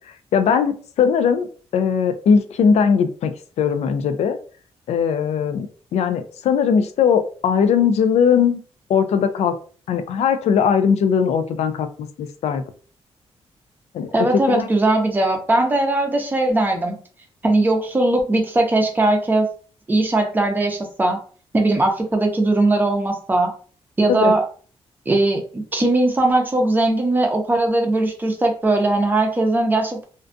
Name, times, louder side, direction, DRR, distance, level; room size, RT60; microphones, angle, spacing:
voice 1, 0.3-1.5 1.7-4.4 4.9-5.7 5.9-8.6 8.9-9.6 9.9-12.6 13.9-14.7 24.1-24.3, left 6 dB, 85° left, 10 dB, 0.4 m, -19 dB
voice 2, 14.1-17.0 17.4-19.5 19.9-21.2 21.5-23.5 24.0-24.4 25.1-30.0, right 2 dB, 15° right, 3 dB, 0.4 m, -19 dB
2.5 x 2.2 x 2.5 m, 0.41 s
wide cardioid pair, 165°, 11 cm